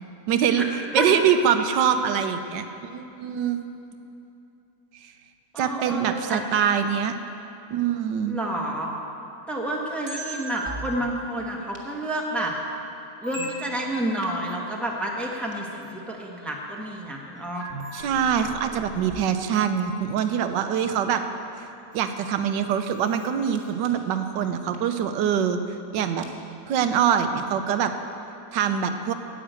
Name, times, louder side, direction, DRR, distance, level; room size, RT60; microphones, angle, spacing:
voice 1, 0.3-0.6 0.9-3.6 5.0-5.1 5.6-7.1 7.7-8.4 17.9-21.2 21.9-25.6 25.9-26.3 26.7-27.9 28.5-29.1, right 8 dB, 85° right, 8 dB, 1.4 m, -24 dB
voice 2, 5.5-6.4 8.3-8.9 9.5-12.5 13.2-17.8, right 1 dB, ahead, -2 dB, 1.1 m, -30 dB
sound 1, 10.1-11.8 12.4-12.5 13.2-13.9 14.2-14.4 15.3-15.5 16.0-16.2 17.6-19.8 20.2-20.4 21.6-21.7 22.4-22.5 22.8-23.3 23.5-23.6 23.8-23.9 24.7-24.8 26.2-26.3 26.8-26.9 27.2-27.3, right 1 dB, 30° right, 1.7 m, -38 dB
10.0 x 9.0 x 8.2 m, 2.8 s
omnidirectional pair, 1.9 m